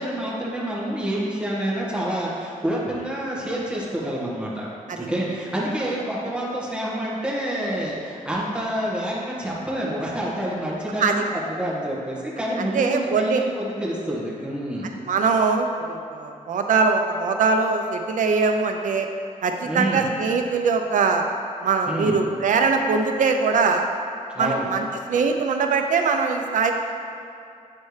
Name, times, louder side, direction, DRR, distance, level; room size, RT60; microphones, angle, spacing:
voice 1, 0.0-4.7 5.0-14.9 19.6-20.1 21.9-22.2 24.3-24.7, right 1 dB, 10° right, -7 dB, 1.3 m, -28 dB
voice 2, 12.7-13.4 15.1-19.1 19.4-21.2 21.6-23.9 24.4-26.7, right 4 dB, 70° right, 4 dB, 0.5 m, -22 dB
8.4 x 4.3 x 3.2 m, 2.5 s
wide cardioid pair, 165°, 14 cm